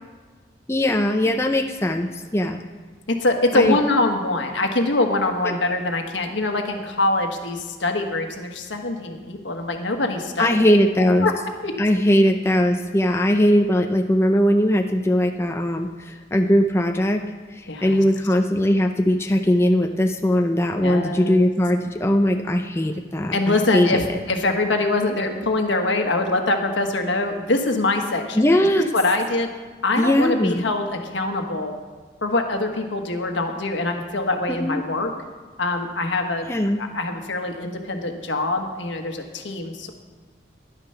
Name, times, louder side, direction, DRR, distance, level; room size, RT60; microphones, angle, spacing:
voice 1, 0.7-2.6 3.5-3.8 5.4-5.5 10.4-11.3 11.8-17.2 17.5-24.0 28.4-28.9 30.0-30.6 34.5-34.8 36.5-36.8, equal, 15° left, 4 dB, 0.5 m, -20 dB
voice 2, 3.1-10.8 11.2-11.3 11.6-11.7 17.7-18.0 20.8-21.5 23.3-28.4 28.7-29.5 29.8-31.7 32.2-35.1 35.6-36.5 36.8-39.9, left 2 dB, 80° left, 4 dB, 1.3 m, -24 dB
11.0 x 9.9 x 5.7 m, 1.5 s
head